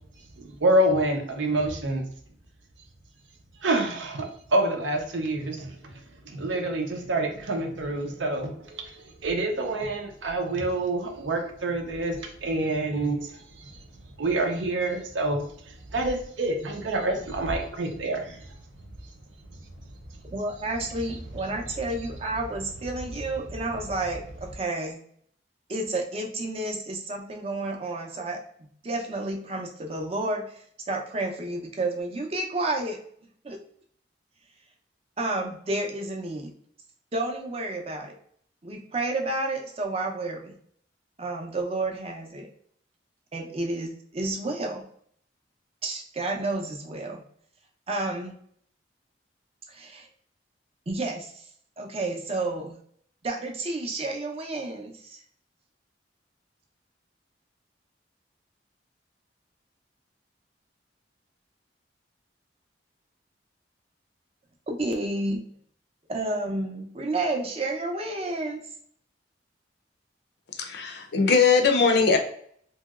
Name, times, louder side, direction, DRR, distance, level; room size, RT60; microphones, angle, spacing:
voice 1, 0.4-2.0 3.6-5.7 6.3-8.8 9.2-13.3 13.6-13.7 14.2-15.4 15.9-18.4, right 1 dB, 90° right, 3 dB, 0.6 m, -27 dB
voice 2, 20.3-25.0 25.7-33.0 33.4-33.6 35.2-36.5 37.1-38.2 38.6-40.5 41.2-42.5 43.3-44.8 45.8-47.2 47.9-48.4 49.7-50.1 50.9-51.4 51.8-52.8 53.2-55.2 64.7-65.5 66.1-68.6, right 2 dB, 35° right, 1 dB, 0.5 m, -31 dB
voice 3, 70.6-72.2, left 5 dB, 60° left, 5 dB, 0.5 m, -20 dB
2.9 x 2.7 x 2.3 m, 0.63 s
head